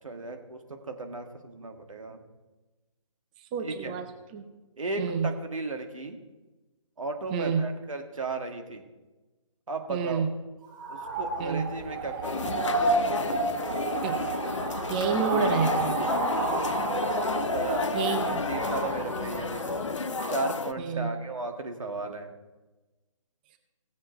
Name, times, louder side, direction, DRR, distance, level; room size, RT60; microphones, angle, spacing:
voice 1, 0.0-2.2 3.6-4.0 4.8-6.2 7.0-8.9 9.7-10.3 10.9-12.6 17.3-19.9 20.3-22.3, right 3 dB, 75° right, 4 dB, 1.8 m, -35 dB
voice 2, 3.4-4.4 5.0-5.3 7.3-7.7 9.9-10.3 11.4-11.7 14.0-14.2 14.9-16.0 17.9-18.4 20.8-21.2, right 5 dB, 15° right, 6 dB, 0.6 m, -29 dB
sound 1, 10.6-20.4, right 3 dB, 35° right, 3.2 m, -31 dB
sound 2, 12.2-20.7, left 5 dB, 65° left, 0.7 m, -32 dB
17.0 x 7.4 x 4.5 m, 1.2 s
figure-of-eight pair, 150°, 17 cm